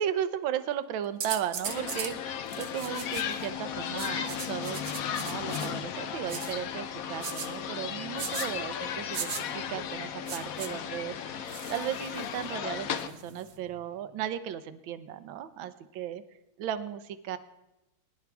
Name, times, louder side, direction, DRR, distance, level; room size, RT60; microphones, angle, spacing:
voice 1, 0.0-16.2 16.6-17.4, right 10 dB, 70° right, 12 dB, 1.5 m, -36 dB
sound 1, 1.2-2.1 2.5-3.4 4.0-5.7 6.3-6.5 7.2-7.5 8.2-8.5 9.1-9.4 10.3-10.7 11.5-12.4 13.0-13.5, right 7 dB, 55° right, 1.1 m, -38 dB
sound 2, 1.6-13.1, left 8 dB, 70° left, 0.8 m, -35 dB
sound 3, 5.9-14.3, left 2 dB, 45° left, 1.6 m, -56 dB
22.5 x 11.0 x 3.5 m, 0.93 s
omnidirectional pair, 2.3 m